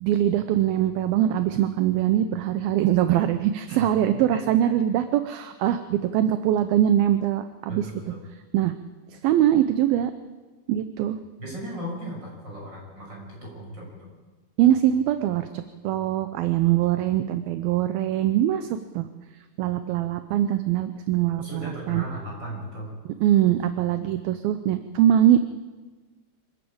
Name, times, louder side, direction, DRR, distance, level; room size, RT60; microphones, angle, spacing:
voice 1, 0.0-7.9 8.5-8.7 9.1-10.1 10.7-11.2 14.6-18.7 18.9-19.1 19.6-22.0 23.2-25.4, right 11 dB, 75° right, 10 dB, 2.6 m, -22 dB
voice 2, 7.7-8.2 11.4-14.1 16.6-16.7 21.4-22.9, right 1 dB, 25° right, -2 dB, 7.3 m, -36 dB
26.0 x 13.5 x 8.7 m, 1.3 s
omnidirectional pair, 4.5 m